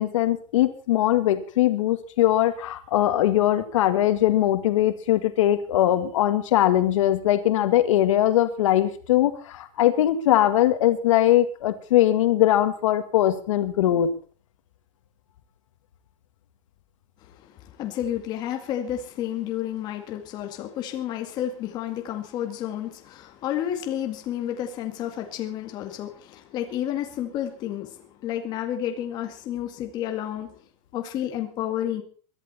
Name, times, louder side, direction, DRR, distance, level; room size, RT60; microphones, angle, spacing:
voice 1, 0.0-14.1, left 13 dB, 85° left, 9 dB, 2.0 m, -21 dB
voice 2, 17.2-30.6 30.9-32.0, left 11 dB, 25° left, 4 dB, 2.1 m, -31 dB
22.5 x 11.5 x 4.3 m, 0.42 s
supercardioid pair, 180°, 16 cm